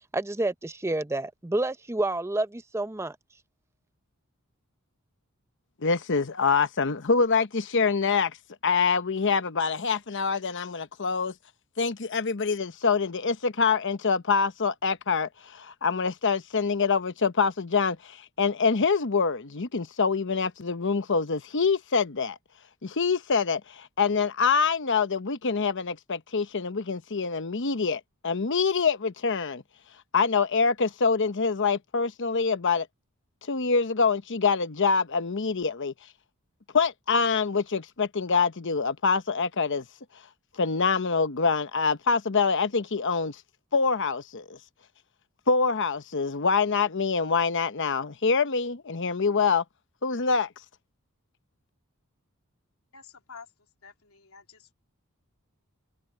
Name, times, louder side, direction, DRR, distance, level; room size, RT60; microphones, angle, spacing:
voice 1, 0.1-3.2, right 2 dB, 10° right, 0.6 m, -29 dB
voice 2, 5.8-8.4 8.6-11.3 11.8-22.4 22.8-29.6 30.1-32.9 33.5-35.9 36.7-39.8 40.6-43.4 43.7-44.6 45.5-49.6 50.0-50.5, left 5 dB, 60° left, 1.0 m, -25 dB
voice 3, 52.9-53.5 53.8-54.7, left 5 dB, 80° left, 3.0 m, -49 dB
head